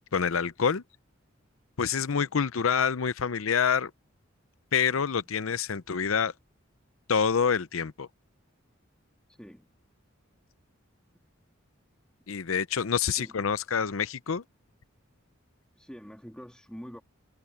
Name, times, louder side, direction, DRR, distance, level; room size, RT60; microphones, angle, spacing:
voice 1, 0.1-0.8 1.8-3.9 4.7-6.3 7.1-8.1 12.3-14.4, left 6 dB, 90° left, 0.6 m, -27 dB
voice 2, 9.3-9.7 13.1-13.5 15.8-17.0, equal, 5° left, 2.0 m, -46 dB
head